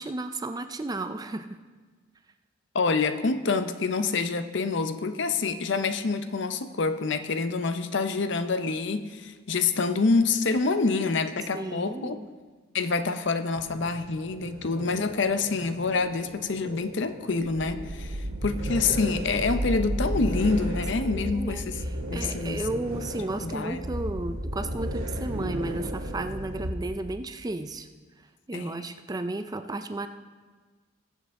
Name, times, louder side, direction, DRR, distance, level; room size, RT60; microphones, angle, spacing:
voice 1, 0.0-1.6 11.5-12.3 21.0-27.9 28.5-30.1, right 2 dB, 20° right, 9 dB, 0.4 m, -33 dB
voice 2, 2.7-12.2 12.7-21.8 22.1-22.6 23.4-23.8 28.5-28.9, left 4 dB, 60° left, 10 dB, 0.6 m, -27 dB
sound 1, 13.5-26.7, right 1 dB, 80° right, 2.0 m, -34 dB
20.5 x 7.3 x 3.6 m, 1.4 s
head